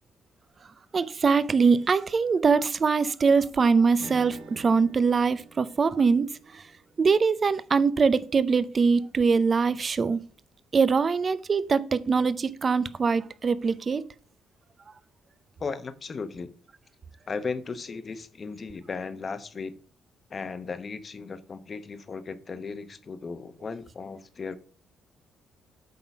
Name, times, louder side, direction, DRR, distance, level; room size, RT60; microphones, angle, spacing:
voice 1, 0.9-6.3 6.5-6.6 7.0-10.2 10.7-14.0, right 5 dB, 40° right, 0.5 m, -23 dB
Strum, 4.0-8.6, right 2 dB, 75° right, 2.1 m, -48 dB
voice 2, 15.6-16.5 17.3-19.7 20.3-24.6, left 4 dB, 40° left, 0.9 m, -36 dB
8.3 x 3.8 x 5.9 m
cardioid pair, 90°, 0 cm